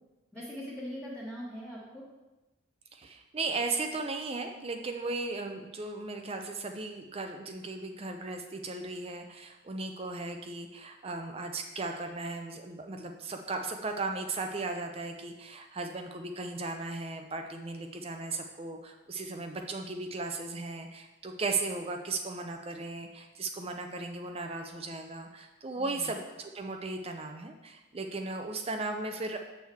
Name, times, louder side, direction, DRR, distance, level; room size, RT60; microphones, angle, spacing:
voice 1, 0.3-2.0 25.7-26.1, equal, 5° left, -10 dB, 1.3 m, -41 dB
voice 2, 2.9-29.4, right 3 dB, 25° right, 4 dB, 0.5 m, -36 dB
7.9 x 6.4 x 3.5 m, 1.1 s
head